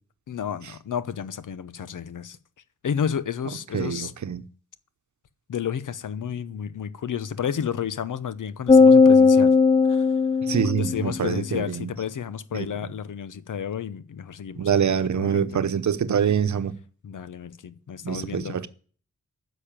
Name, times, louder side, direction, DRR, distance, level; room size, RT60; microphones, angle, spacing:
voice 1, 0.3-2.4 2.8-4.1 5.5-9.5 9.9-10.1 10.8-15.6 17.0-18.7, left 8 dB, 85° left, 0.9 m, -31 dB
voice 2, 3.7-4.4 10.5-11.9 12.5-12.7 14.6-16.7 18.0-18.7, right 7 dB, 70° right, 0.9 m, -25 dB
sound 1, 8.7-11.2, left 4 dB, 20° left, 0.5 m, -16 dB
10.0 x 6.5 x 8.8 m
wide cardioid pair, 110°, 30 cm